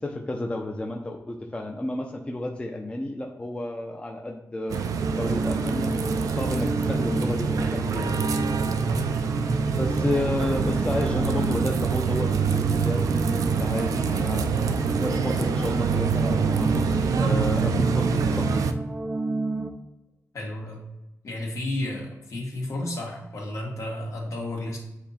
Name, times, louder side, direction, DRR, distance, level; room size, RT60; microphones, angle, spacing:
voice 1, 0.0-4.8 5.1-8.2 9.7-14.5 15.0-18.5, left 1 dB, 20° left, 1 dB, 0.6 m, -31 dB
sound 1, 4.7-18.7, right 6 dB, 90° right, 0.4 m, -26 dB
sound 2, 5.0-19.7, right 2 dB, 20° right, 0.5 m, -30 dB
voice 2, 20.3-20.8 21.2-24.8, left 1 dB, 65° left, -2 dB, 1.9 m, -32 dB
7.9 x 2.8 x 4.3 m, 0.95 s
cardioid pair, 90°, 6 cm